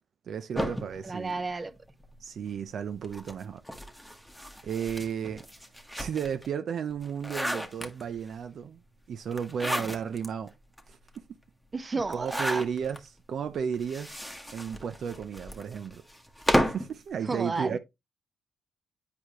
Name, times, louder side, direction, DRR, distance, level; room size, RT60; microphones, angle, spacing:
voice 1, 0.3-1.3 2.2-3.6 4.6-5.4 6.0-8.8 9.1-10.5 10.9-11.3 11.9-14.2 14.5-16.0 16.6-17.8, right 7 dB, 60° right, 0.5 m, -33 dB
sound 1, 0.5-2.1 3.0-6.5 6.9-8.3 9.3-10.3 10.8-10.9 11.1-11.2 12.1-13.0 13.7-16.9, equal, ahead, 1.1 m, -33 dB
voice 2, 1.0-1.7 11.7-12.6 17.3-17.8, right 3 dB, 25° right, 0.7 m, -32 dB
8.4 x 4.7 x 2.9 m
cardioid pair, 90°, 0 cm